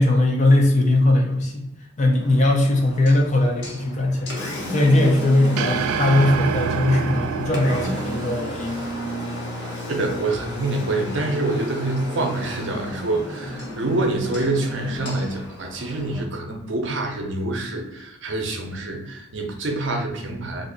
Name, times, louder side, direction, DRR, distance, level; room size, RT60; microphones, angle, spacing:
voice 1, 0.0-1.7 2.0-4.4 4.7-8.8, left 2 dB, 35° left, 1 dB, 0.5 m, -19 dB
Engine, 2.2-16.2, left 1 dB, 50° left, 0.9 m, -33 dB
sound 1, 5.6-10.0, right 6 dB, 80° right, 0.3 m, -28 dB
voice 2, 9.9-20.7, right 2 dB, 55° right, 2 dB, 0.7 m, -26 dB
2.6 x 2.5 x 3.8 m, 0.92 s
head